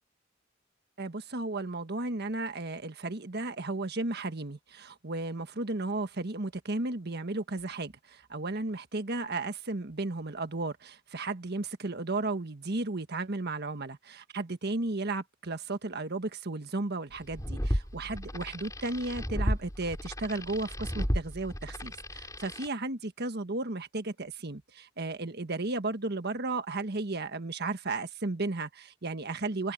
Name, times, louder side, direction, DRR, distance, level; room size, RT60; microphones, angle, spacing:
voice 1, 1.0-29.7, right 2 dB, 55° right, 1.5 m, -34 dB
sound 1, 17.2-22.7, equal, 15° left, 6.5 m, -33 dB
open air
head